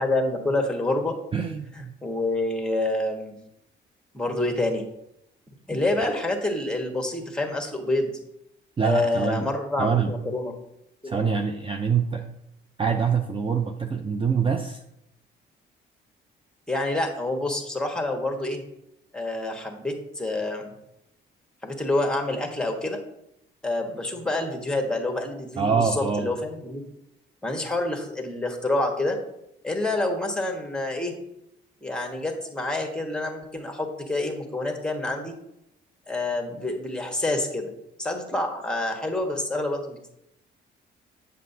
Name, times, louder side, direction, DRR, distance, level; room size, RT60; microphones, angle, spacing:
voice 1, 0.0-1.1 2.0-3.3 4.1-4.8 5.7-8.2 8.8-10.5 11.0-11.2 16.7-18.6 19.1-20.7 21.6-23.0 23.6-26.8 27.4-29.2 29.6-31.1 31.8-35.3 36.1-37.7 38.0-40.1, left 2 dB, 5° left, 2 dB, 1.3 m, -27 dB
voice 2, 1.3-1.9 8.8-9.5 9.8-10.1 11.0-12.2 12.8-14.8 25.6-26.3, right 6 dB, 25° right, 4 dB, 0.5 m, -25 dB
7.4 x 6.5 x 2.7 m, 0.80 s
cardioid pair, 90°, 20 cm